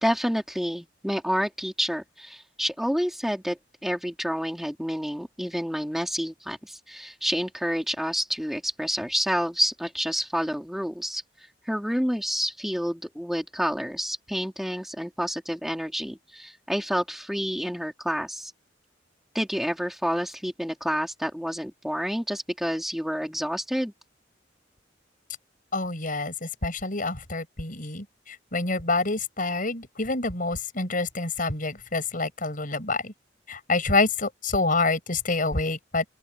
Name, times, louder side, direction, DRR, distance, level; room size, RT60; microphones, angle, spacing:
voice 1, 0.0-11.2 11.6-18.5 19.3-23.9, equal, ahead, 3.0 m, -29 dB
voice 2, 25.7-33.1 33.5-36.0, left 3 dB, 50° left, 6.6 m, -27 dB
open air
head